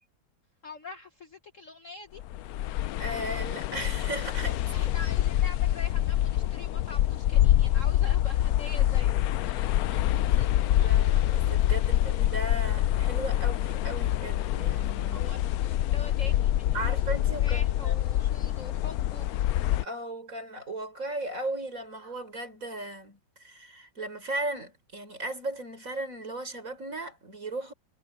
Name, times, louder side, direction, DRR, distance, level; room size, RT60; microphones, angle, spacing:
voice 1, 0.6-2.2 4.7-9.8 15.1-17.0 17.4-19.3, left 3 dB, 45° left, 1.4 m, -44 dB
sound 1, 2.2-19.8, left 13 dB, 85° left, 0.8 m, -26 dB
voice 2, 3.0-5.0 9.9-15.3 16.7-17.9 19.8-27.7, right 1 dB, 40° right, 5.3 m, -37 dB
omnidirectional pair, 2.1 m